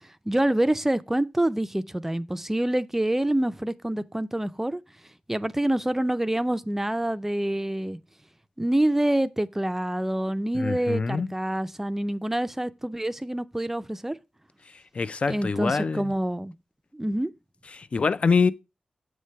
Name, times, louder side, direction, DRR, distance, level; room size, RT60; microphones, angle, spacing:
voice 1, 0.3-4.8 5.3-8.0 8.6-14.2 15.3-16.5 16.9-17.3, right 1 dB, 15° right, 0.4 m, -26 dB
voice 2, 10.5-11.3 14.9-16.1 17.7-18.5, left 4 dB, 55° left, 0.4 m, -25 dB
7.3 x 3.2 x 5.5 m
cardioid pair, 60°, 2 cm